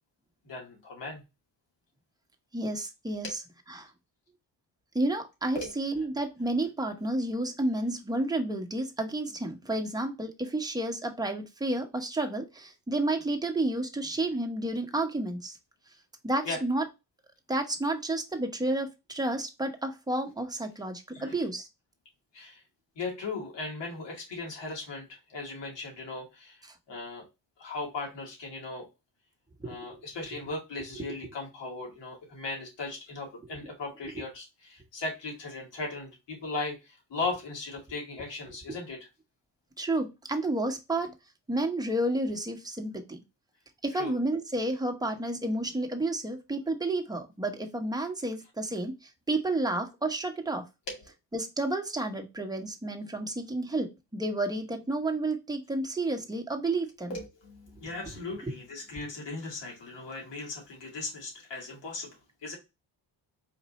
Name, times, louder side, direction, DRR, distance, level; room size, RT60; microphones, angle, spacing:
voice 1, 0.4-1.2 3.2-3.3 5.5-5.7 16.4-16.6 21.1-21.4 22.3-22.6 23.0-26.6 26.9-27.2 27.6-28.9 29.6-39.0 43.9-44.1 50.9-51.0 57.1-62.1 62.4-62.6, left 3 dB, 70° left, -2 dB, 2.4 m, -37 dB
voice 2, 2.5-3.4 3.7-3.9 4.9-15.6 16.2-16.8 17.5-21.7 29.6-29.8 39.8-41.1 41.5-43.2 43.8-50.6 51.3-57.1, right 2 dB, 10° right, 3 dB, 1.0 m, -31 dB
4.2 x 2.6 x 4.1 m, 0.25 s
cardioid pair, 100°, 44 cm